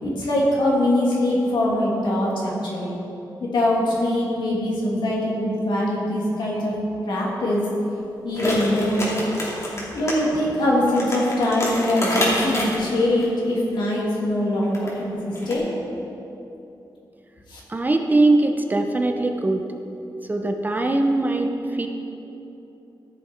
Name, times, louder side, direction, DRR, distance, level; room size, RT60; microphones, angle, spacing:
voice 1, 0.0-2.9 3.4-6.7 7.1-7.6 8.2-9.1 9.9-15.6 17.5-17.6, left 1 dB, 80° left, -4 dB, 2.6 m, -22 dB
sound 1, 8.3-10.2 10.4-10.5 10.9-13.3 14.6-14.9 15.3-15.5, left 1 dB, 40° left, 2.7 m, -27 dB
voice 2, 17.7-19.6 20.3-21.9, right 2 dB, 20° right, 4 dB, 0.8 m, -21 dB
14.5 x 6.9 x 4.5 m, 3.0 s
wide cardioid pair, 105°, 8 cm